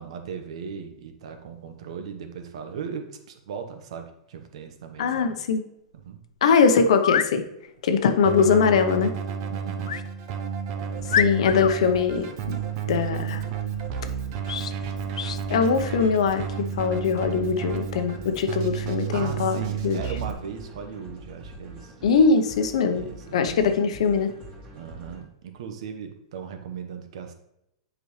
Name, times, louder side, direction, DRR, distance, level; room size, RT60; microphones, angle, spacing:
voice 1, 0.0-5.3 5.9-6.2 7.9-8.0 9.5-10.0 19.1-21.9 22.8-23.7 24.7-27.3, right 6 dB, 70° right, 6 dB, 1.1 m, -38 dB
voice 2, 5.0-5.6 6.4-7.4 7.8-9.1 11.2-12.6 12.9-13.4 15.5-20.0 22.0-23.1 23.3-24.3, left 5 dB, 75° left, 8 dB, 0.8 m, -21 dB
sound 1, 6.0-6.1 6.9-7.3 9.9-10.1 10.6-10.7 11.1-11.7 14.5-14.8 15.2-15.4, left 8 dB, 90° left, 0.4 m, -26 dB
Keyboard (musical), 8.2-20.3, right 7 dB, 50° right, 0.9 m, -32 dB
sound 2, 10.7-25.2, right 1 dB, 30° right, 2.2 m, -45 dB
8.0 x 5.2 x 3.2 m, 0.82 s
hypercardioid pair, 130°, 3 cm